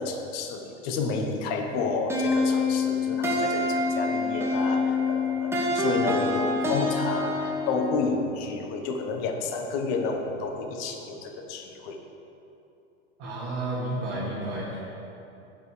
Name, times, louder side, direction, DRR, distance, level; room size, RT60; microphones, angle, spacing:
voice 1, 0.0-12.0, left 4 dB, 45° left, 4 dB, 1.4 m, -30 dB
sound 1, 2.1-7.9, left 2 dB, 5° right, 1.9 m, -26 dB
voice 2, 13.2-14.8, right 2 dB, 45° right, -7 dB, 2.5 m, -31 dB
16.0 x 11.0 x 3.4 m, 2.8 s
figure-of-eight pair, 85°, 36 cm